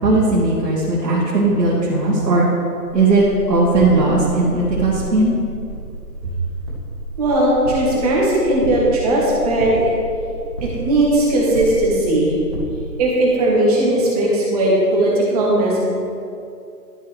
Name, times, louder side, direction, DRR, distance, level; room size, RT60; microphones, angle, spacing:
voice 1, 0.0-2.5 2.9-5.4 6.2-6.3, right 2 dB, 85° right, -7 dB, 1.9 m, -17 dB
sound 1, 2.9-12.6, right 1 dB, 15° left, 0.6 m, -32 dB
voice 2, 7.2-9.9 10.6-12.3 13.0-15.8, right 1 dB, 25° right, -4 dB, 1.4 m, -17 dB
11.5 x 5.2 x 3.3 m, 2.5 s
hypercardioid pair, 155°, 49 cm